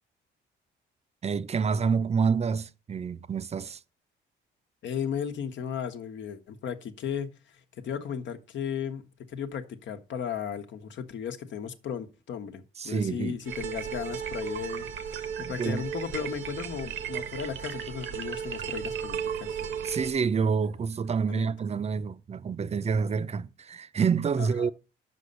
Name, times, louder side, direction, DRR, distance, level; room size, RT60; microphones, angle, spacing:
voice 1, 1.2-3.8 12.8-13.4 15.4-15.8 19.8-24.7, right 6 dB, 30° right, 0.6 m, -28 dB
voice 2, 4.8-7.3 7.8-19.6 21.3-21.5 24.4-24.7, left 8 dB, 65° left, 1.1 m, -35 dB
sound 1, 13.5-20.1, right 8 dB, 75° right, 1.0 m, -35 dB
6.2 x 5.4 x 6.7 m
cardioid pair, 90°, 20 cm